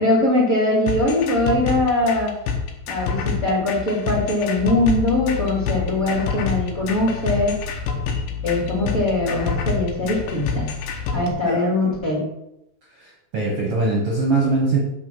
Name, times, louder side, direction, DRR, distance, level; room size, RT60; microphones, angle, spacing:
voice 1, 0.0-2.3 2.9-7.5 8.4-10.7 11.1-12.2, left 2 dB, 20° left, -5 dB, 2.7 m, -21 dB
sound 1, 0.9-11.3, left 5 dB, 75° left, 2.8 m, -27 dB
voice 2, 12.9-14.8, right 3 dB, 55° right, -3 dB, 1.8 m, -22 dB
6.6 x 6.1 x 6.2 m, 0.88 s
omnidirectional pair, 4.3 m